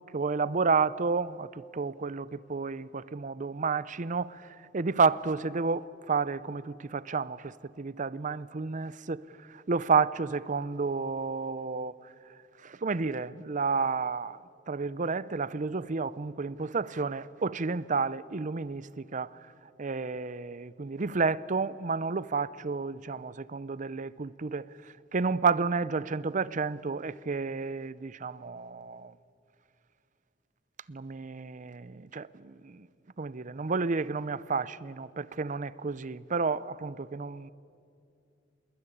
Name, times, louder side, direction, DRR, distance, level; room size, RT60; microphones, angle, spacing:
voice 1, 0.1-4.5 4.7-9.2 9.5-11.9 12.6-14.4 14.7-19.3 19.8-24.7 25.1-29.1 30.9-32.9 33.2-37.5, right 4 dB, 40° right, 0.6 m, -31 dB
27.0 x 21.0 x 9.9 m
head